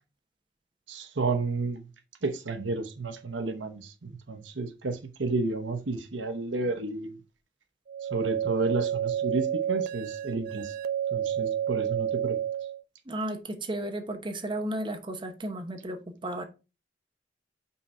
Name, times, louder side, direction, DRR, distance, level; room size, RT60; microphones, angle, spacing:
voice 1, 0.9-1.9 2.2-7.2 8.1-10.7 11.1-12.4, right 3 dB, 80° right, 0.8 m, -31 dB
sound 1, 7.9-12.8, right 10 dB, 55° right, 0.4 m, -30 dB
voice 2, 13.1-16.4, right 1 dB, 25° right, 0.9 m, -34 dB
5.6 x 4.2 x 4.7 m
head